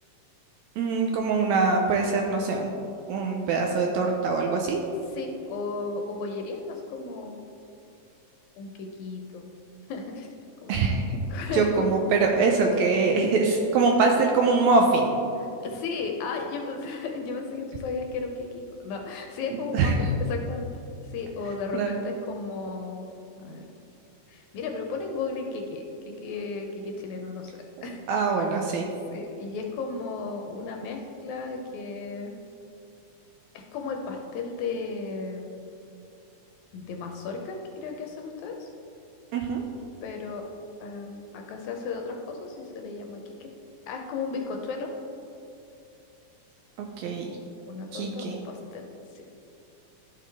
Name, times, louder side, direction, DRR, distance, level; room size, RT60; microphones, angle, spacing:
voice 1, 0.8-2.7 3.1-4.8 10.7-11.1 11.5-15.1 19.7-20.1 21.7-22.1 28.1-28.8 39.3-39.6 46.8-47.3 47.9-48.4, right 4 dB, 80° right, 2 dB, 1.7 m, -23 dB
voice 2, 5.1-7.4 8.6-9.5 9.9-10.3 10.6-10.8 11.3-11.9 15.4-20.7 21.1-23.0 23.4-23.6 24.3-28.0 29.1-32.4 33.5-35.5 36.7-38.7 40.0-40.5 40.8-43.5 43.9-44.9 47.7-48.9 49.1-49.2, left 4 dB, 75° left, 2 dB, 1.8 m, -34 dB
12.0 x 4.7 x 3.4 m, 2.8 s
omnidirectional pair, 3.6 m